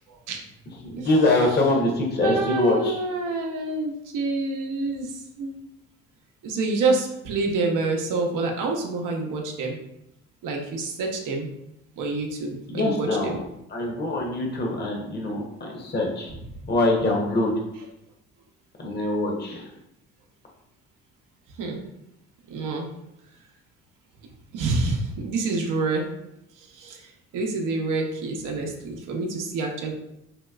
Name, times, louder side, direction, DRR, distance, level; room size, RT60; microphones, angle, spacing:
voice 1, 0.1-0.4 1.0-1.1 2.2-5.6 6.4-9.8 10.4-11.5 12.0-13.4 21.6-21.8 22.5-22.9 24.5-26.1 26.6-29.9, right 3 dB, 65° right, 1 dB, 0.7 m, -27 dB
voice 2, 0.8-3.0 12.7-13.4 13.7-16.3 16.7-17.5 18.8-19.7, left 2 dB, 30° left, -1 dB, 0.8 m, -24 dB
2.9 x 2.8 x 2.3 m, 0.83 s
hypercardioid pair, 60°, 34 cm